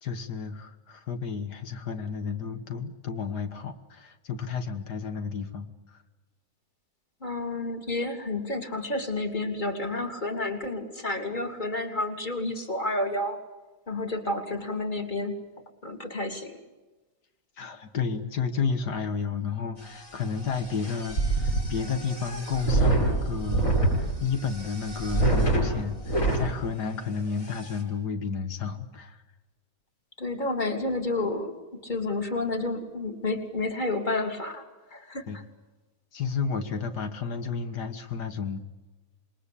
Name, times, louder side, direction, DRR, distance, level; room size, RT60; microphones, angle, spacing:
voice 1, 0.0-6.0 17.6-29.2 35.3-35.4 36.1-38.6, left 5 dB, 85° left, 8 dB, 2.1 m, -32 dB
voice 2, 7.2-13.4 13.9-15.4 15.8-16.6 30.2-31.5 31.8-34.6 34.9-35.3, left 2 dB, 30° left, 5 dB, 3.1 m, -30 dB
sound 1, 19.8-26.5 27.0-27.1 27.4-27.8, right 2 dB, 55° left, 8.5 m, -27 dB
27.5 x 21.5 x 8.5 m, 1.2 s
omnidirectional pair, 1.7 m